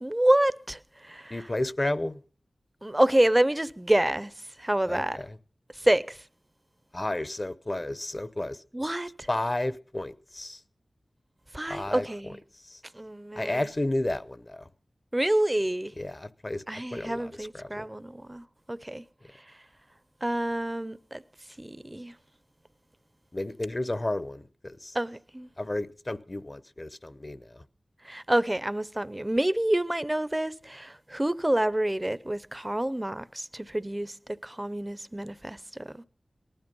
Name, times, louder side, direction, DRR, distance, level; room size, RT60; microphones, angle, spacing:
voice 1, 0.0-1.5 2.8-4.3 4.6-5.2 5.8-6.2 8.7-9.3 11.5-12.4 12.9-13.7 15.1-15.9 16.7-19.0 20.2-21.2 21.6-22.1 24.9-25.5 28.0-35.6 35.9-36.0, right 1 dB, 15° right, 0.7 m, -27 dB
voice 2, 1.3-2.2 4.9-5.4 6.9-8.6 9.3-10.6 11.7-12.3 12.7-12.8 13.4-14.7 16.0-17.9 23.3-25.0 25.6-27.6, left 1 dB, 30° left, 0.8 m, -32 dB
19.0 x 12.5 x 5.4 m
wide cardioid pair, 80°, 0 cm